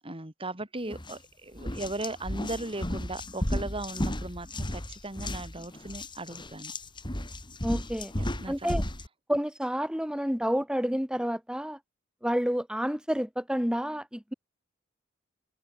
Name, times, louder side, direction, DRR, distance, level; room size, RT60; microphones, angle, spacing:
voice 1, 0.0-6.7 8.2-8.7, right 2 dB, 30° right, 4.3 m, -37 dB
sound 1, 0.9-1.2 1.6-9.1, left 1 dB, 25° left, 4.0 m, -34 dB
voice 2, 7.6-8.1 8.5-8.8 9.3-11.8 12.2-14.3, equal, 5° right, 2.5 m, -29 dB
head